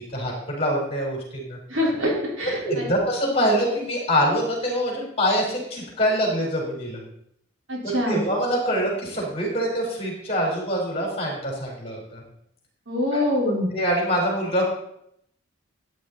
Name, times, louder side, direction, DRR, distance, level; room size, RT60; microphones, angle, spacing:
voice 1, 0.0-1.6 2.4-7.0 7.8-12.2 13.1-13.2 13.7-14.7, equal, 30° left, -1 dB, 4.2 m, -25 dB
voice 2, 1.7-2.9 7.7-8.2 12.9-13.7, left 1 dB, 80° right, -3 dB, 4.0 m, -24 dB
14.0 x 9.2 x 4.1 m, 0.73 s
head